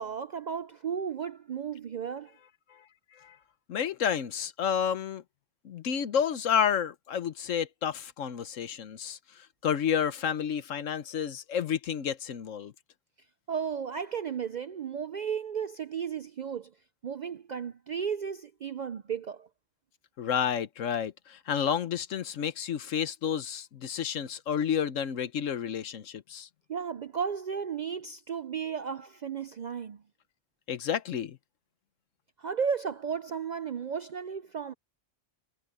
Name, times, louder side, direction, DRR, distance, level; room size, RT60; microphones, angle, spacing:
voice 1, 0.0-2.3 13.5-16.7 17.0-19.5 26.7-30.0 32.4-34.7, right 7 dB, 65° right, 0.4 m, -34 dB
voice 2, 3.7-5.2 5.6-12.7 20.2-26.5 30.7-31.4, left 8 dB, 90° left, 1.3 m, -30 dB
omnidirectional pair, 1.3 m